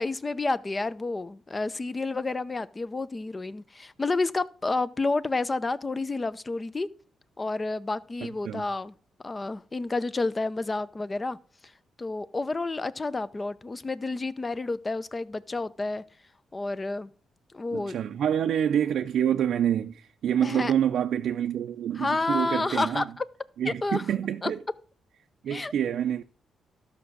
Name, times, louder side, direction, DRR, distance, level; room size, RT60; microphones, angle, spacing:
voice 1, 0.0-6.9 7.4-8.9 9.2-11.4 12.0-16.0 16.5-17.1 17.5-17.9 20.4-20.7 22.0-23.0 23.6-24.0 24.4-24.5 25.5-25.7, left 3 dB, 25° left, 0.6 m, -30 dB
voice 2, 17.7-23.0 23.6-24.6 25.4-26.2, right 9 dB, 75° right, 0.5 m, -27 dB
13.0 x 6.0 x 6.2 m
cardioid pair, 90°, 0 cm